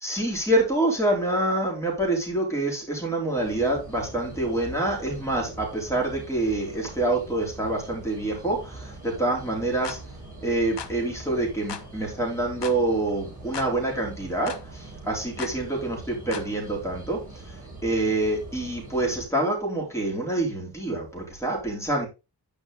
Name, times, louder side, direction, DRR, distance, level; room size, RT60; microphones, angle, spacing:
voice 1, 0.0-10.0 10.4-22.1, right 2 dB, 5° left, -1 dB, 3.9 m, -26 dB
sound 1, 3.3-19.2, right 2 dB, 20° right, 4.6 m, -43 dB
sound 2, 9.8-10.0 10.8-11.0 11.7-11.9 12.6-12.8 13.5-13.7 14.5-14.6 15.4-15.6 16.3-16.5, left 7 dB, 80° left, 1.1 m, -36 dB
10.5 x 5.2 x 4.0 m, 0.28 s
wide cardioid pair, 150°, 42 cm